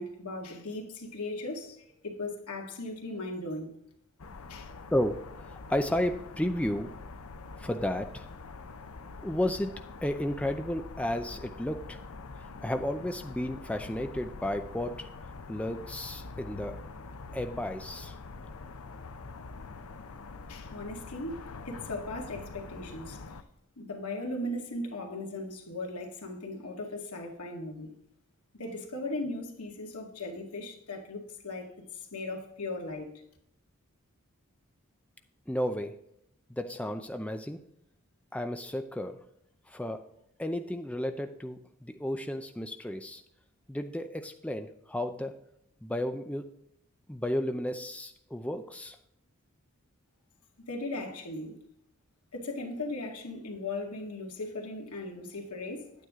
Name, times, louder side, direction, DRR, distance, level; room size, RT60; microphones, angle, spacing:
voice 1, 0.0-3.7 4.5-4.7 20.5-23.2 23.8-27.9 28.5-33.2 50.7-51.6 52.3-55.9, left 2 dB, 90° left, 2.0 m, -38 dB
sound 1, 4.2-23.4, left 3 dB, 75° left, 0.7 m, -45 dB
voice 2, 4.9-5.2 5.7-6.9 7.6-8.3 9.2-9.7 10.0-12.0 12.6-15.1 15.5-16.7 17.3-18.2 35.5-35.9 36.5-37.6 38.3-39.2 39.7-40.0 40.4-43.2 43.7-45.4 45.8-46.5 47.1-49.0, left 1 dB, 5° left, 0.5 m, -32 dB
9.5 x 9.3 x 3.7 m
head